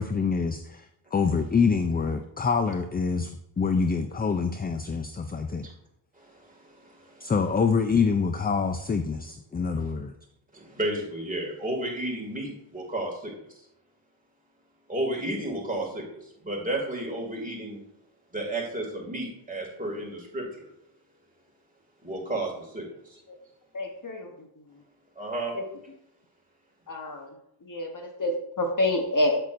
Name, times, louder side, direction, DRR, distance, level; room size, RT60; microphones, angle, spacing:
voice 1, 0.0-5.7 7.2-10.1, left 5 dB, 20° left, 7 dB, 0.3 m, -26 dB
voice 2, 6.1-7.3 9.6-9.9 10.5-13.7 14.9-17.8 18.3-20.7 22.0-23.2 25.2-25.5, right 1 dB, 15° right, -2 dB, 2.3 m, -33 dB
voice 3, 23.7-24.3 25.5-25.6 26.9-27.3 27.7-29.4, left 1 dB, 40° left, 3 dB, 1.1 m, -27 dB
8.1 x 8.0 x 2.6 m, 0.79 s
wide cardioid pair, 105°, 49 cm